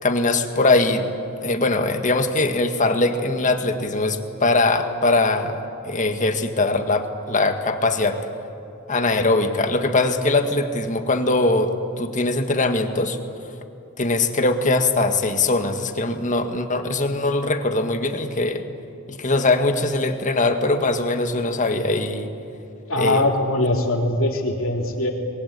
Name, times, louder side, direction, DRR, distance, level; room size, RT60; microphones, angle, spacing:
voice 1, 0.0-1.1 1.4-5.6 5.8-8.2 8.9-13.2 14.0-18.6 19.1-22.3 23.0-23.2, left 2 dB, 40° left, 7 dB, 1.8 m, -21 dB
voice 2, 22.9-25.1, left 1 dB, 70° left, 2 dB, 3.4 m, -22 dB
26.5 x 22.5 x 8.3 m, 2.8 s
head